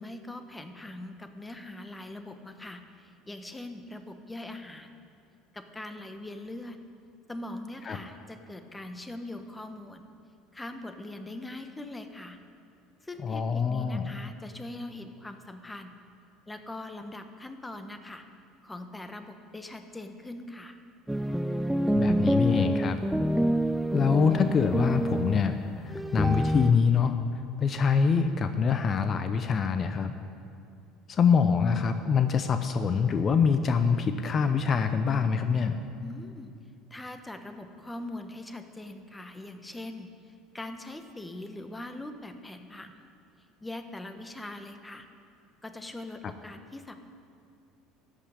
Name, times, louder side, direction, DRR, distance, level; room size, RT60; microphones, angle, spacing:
voice 1, 0.0-5.0 5.5-6.8 7.3-10.1 10.5-12.4 13.0-16.0 16.5-18.2 18.6-20.8 36.0-36.5 36.9-43.1 43.6-45.1 45.6-47.0, left 2 dB, 10° left, 8 dB, 1.2 m, -42 dB
voice 2, 13.2-14.1 22.0-23.0 23.9-27.2 27.6-30.1 31.1-35.8, left 6 dB, 40° left, 9 dB, 0.7 m, -25 dB
sound 1, 21.1-26.7, equal, 5° right, 0.4 m, -27 dB
14.5 x 5.7 x 9.9 m, 2.4 s
hypercardioid pair, 75°, 0 cm